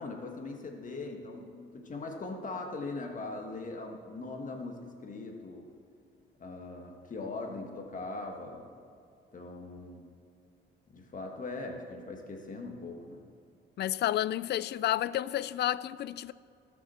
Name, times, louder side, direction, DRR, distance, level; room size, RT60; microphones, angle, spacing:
voice 1, 0.0-5.7 6.4-8.7 9.3-10.1 10.9-13.3, left 3 dB, 40° left, 1.6 m, -40 dB
voice 2, 13.8-16.3, left 12 dB, 60° left, 0.4 m, -30 dB
18.0 x 6.2 x 4.3 m
cardioid pair, 90°, 20 cm